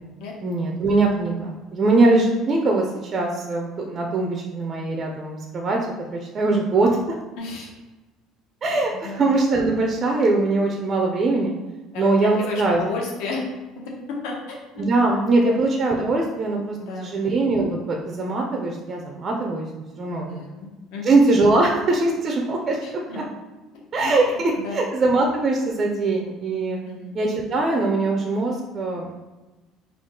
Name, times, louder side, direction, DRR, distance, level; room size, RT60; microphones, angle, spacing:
voice 1, 0.4-5.8 6.1-7.0 8.6-11.5 11.9-12.8 14.8-19.7 20.0-20.4 21.0-22.8 23.9-26.8 27.1-29.1, right 2 dB, 25° right, 1 dB, 0.4 m, -21 dB
voice 2, 7.4-7.7 9.0-9.2 11.9-13.4 14.1-15.6 16.8-17.2 20.3-21.0 22.8-23.2 24.0-24.1 24.6-24.8 26.8-27.1, left 3 dB, 75° left, -1 dB, 0.9 m, -33 dB
3.6 x 2.3 x 3.6 m, 1.1 s
cardioid pair, 175°, 0 cm